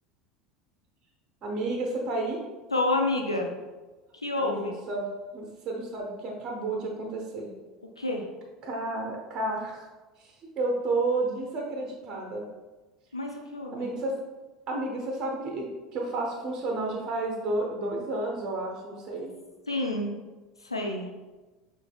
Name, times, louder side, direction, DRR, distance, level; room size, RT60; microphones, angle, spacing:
voice 1, 1.4-2.4 4.4-5.0 5.3-7.5 8.6-9.8 10.2-12.4 13.7-14.1 14.7-19.3, right 2 dB, 35° right, 0 dB, 1.0 m, -31 dB
voice 2, 2.7-3.5 4.2-4.8 8.0-8.2 13.1-13.9 19.7-20.1 20.6-21.1, left 2 dB, 85° left, 2 dB, 0.5 m, -28 dB
6.6 x 3.2 x 2.2 m, 1.2 s
figure-of-eight pair, 75°, 3 cm